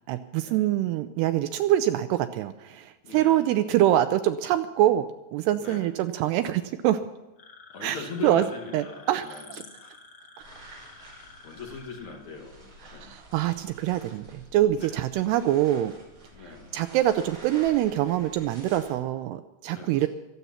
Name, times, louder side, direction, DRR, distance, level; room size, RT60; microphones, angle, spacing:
voice 1, 0.1-5.1 5.3-7.0 7.8-8.4 8.7-9.6 12.9-15.9 16.4-20.1, right 13 dB, 80° right, 10 dB, 2.5 m, -25 dB
voice 2, 2.7-3.6 5.6-5.9 7.7-10.0 11.4-13.2 14.8-15.2 16.3-16.8 19.7-20.1, left 4 dB, 55° left, 0 dB, 2.3 m, -41 dB
sound 1, 7.4-12.2, left 4 dB, 85° left, 0.8 m, -50 dB
sound 2, 10.4-18.9, right 1 dB, 25° right, 5.9 m, -50 dB
24.5 x 8.3 x 5.8 m, 1.0 s
omnidirectional pair, 5.1 m